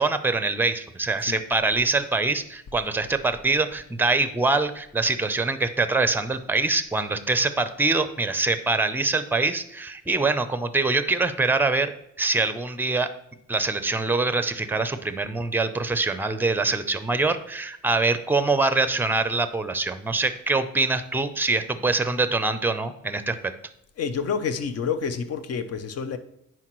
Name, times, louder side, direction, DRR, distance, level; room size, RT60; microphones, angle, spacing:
voice 1, 0.0-11.9 12.2-13.1 13.5-23.5, right 3 dB, 5° right, 0.5 m, -24 dB
voice 2, 24.0-26.2, left 6 dB, 55° left, 0.7 m, -28 dB
9.9 x 4.6 x 3.1 m
cardioid pair, 90°, 30 cm